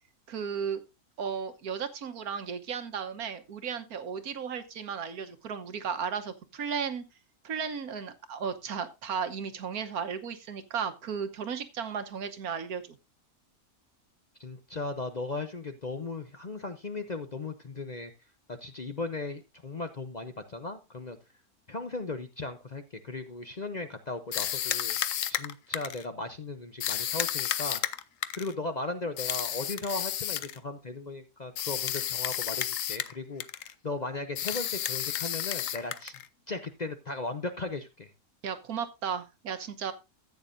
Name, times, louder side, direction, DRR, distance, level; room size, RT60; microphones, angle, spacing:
voice 1, 0.3-0.8 1.2-7.0 7.4-13.0 38.4-39.9, right 7 dB, 75° right, 9 dB, 1.6 m, -35 dB
voice 2, 14.4-18.1 18.5-21.2 21.7-25.0 25.3-27.8 28.3-36.2 36.5-38.1, left 3 dB, 40° left, 8 dB, 0.7 m, -37 dB
sound 1, 24.3-26.1 26.8-28.5 29.2-30.6 31.6-33.2 33.4-33.7 34.4-36.3, left 11 dB, 65° left, 1.0 m, -32 dB
14.0 x 8.8 x 2.6 m, 0.25 s
omnidirectional pair, 1.6 m